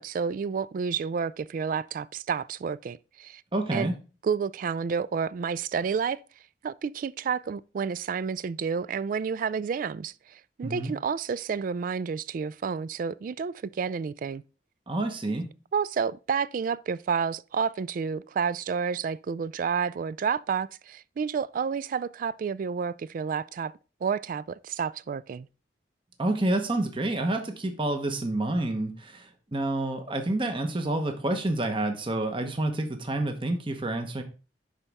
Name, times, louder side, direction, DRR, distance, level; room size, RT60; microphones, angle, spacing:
voice 1, 0.0-3.4 3.7-3.9 4.2-6.2 6.6-14.4 15.7-23.7 24.0-25.5, right 6 dB, 50° right, 0.3 m, -30 dB
voice 2, 3.5-3.9 10.6-10.9 14.9-15.4 26.2-34.2, right 2 dB, 30° right, 1.0 m, -28 dB
11.0 x 4.1 x 3.5 m
head